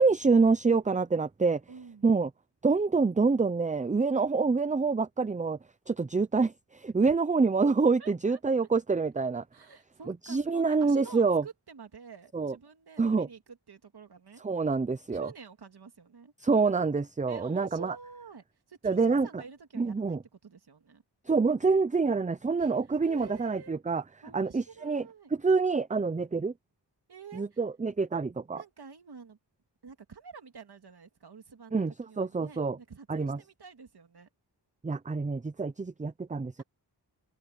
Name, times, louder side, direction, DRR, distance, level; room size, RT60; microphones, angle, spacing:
voice 1, 0.0-1.6 2.0-2.3 2.6-5.6 5.9-9.4 10.3-11.4 12.3-12.5 13.0-13.3 14.4-15.3 16.4-18.0 18.8-19.4 19.8-20.2 21.3-24.0 24.3-26.5 27.3-28.6 31.7-32.8 33.1-33.4 34.8-36.6, right 4 dB, 15° right, 0.5 m, -26 dB
voice 2, 1.7-2.1 7.0-7.2 8.0-8.4 9.5-14.5 15.1-16.3 17.3-21.0 22.6-22.7 23.0-23.8 24.2-25.3 27.1-27.6 28.5-29.4 29.8-34.3 36.6-36.7, right 5 dB, 60° right, 2.7 m, -49 dB
wide cardioid pair, 85°, 43 cm